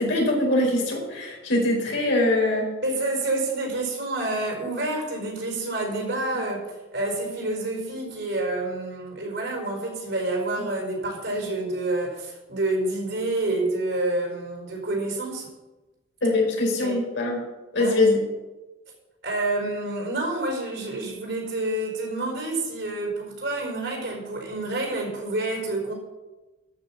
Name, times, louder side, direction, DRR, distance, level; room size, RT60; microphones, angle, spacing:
voice 1, 0.0-2.7 16.2-17.4 17.7-18.2, left 2 dB, 75° left, -2 dB, 4.8 m, -22 dB
voice 2, 2.8-6.6 6.9-15.5 16.8-17.0 17.8-18.0 19.2-25.9, right 2 dB, 65° right, 0 dB, 5.0 m, -28 dB
13.5 x 6.4 x 7.3 m, 1.1 s
head